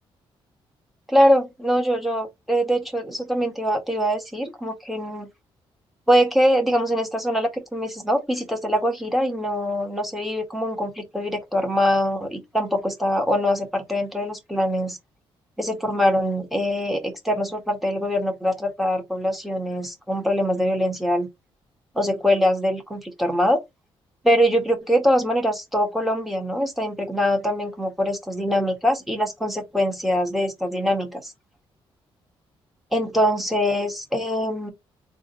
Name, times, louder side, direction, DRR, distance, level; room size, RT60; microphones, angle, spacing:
voice 1, 1.1-5.3 6.1-15.0 15.6-21.3 21.9-23.6 24.2-31.3 32.9-34.7, equal, ahead, 1.5 m, -23 dB
3.6 x 2.6 x 3.8 m
cardioid pair, 110°, 10 cm